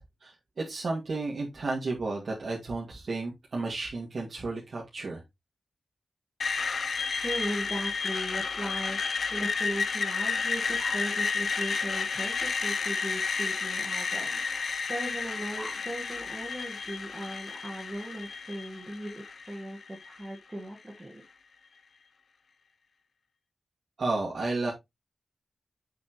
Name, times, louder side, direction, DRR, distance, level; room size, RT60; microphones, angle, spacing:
voice 1, 0.2-5.2 24.0-24.7, right 3 dB, 55° right, 2.3 m, -32 dB
Screech, 6.4-20.4, left 5 dB, 65° left, 0.7 m, -31 dB
voice 2, 6.9-21.2, right 1 dB, 15° right, 1.7 m, -38 dB
7.8 x 6.4 x 3.1 m
wide cardioid pair, 155°, 0 cm